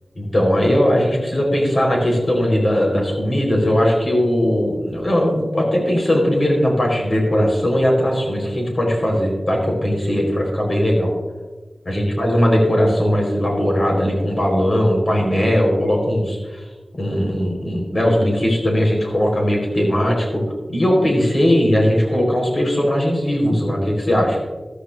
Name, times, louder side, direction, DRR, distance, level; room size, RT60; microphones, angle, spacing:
voice 1, 0.2-11.1 11.8-16.6 17.0-20.4 20.7-24.4, equal, 50° left, 0 dB, 4.2 m, -19 dB
14.0 x 13.5 x 2.6 m, 1.3 s
wide cardioid pair, 80°, 0 cm